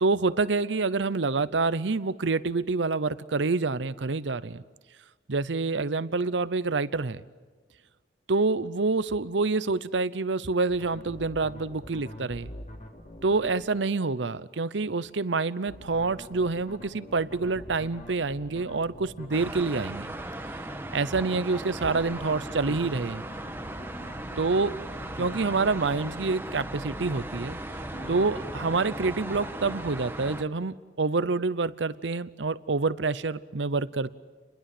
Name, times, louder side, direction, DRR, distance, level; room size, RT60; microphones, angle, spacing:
voice 1, 0.0-4.6 5.3-7.2 8.3-12.5 13.2-20.1 20.9-23.2 24.4-24.8 25.2-27.6 28.1-34.1, right 3 dB, 85° right, 17 dB, 0.8 m, -27 dB
sound 1, 10.7-13.6 15.7-19.6 21.7-25.6 27.7-29.8, equal, 40° left, 3.2 m, -44 dB
sound 2, 19.3-30.4, right 1 dB, 10° right, 1.3 m, -37 dB
29.5 x 21.5 x 7.8 m, 1.4 s
head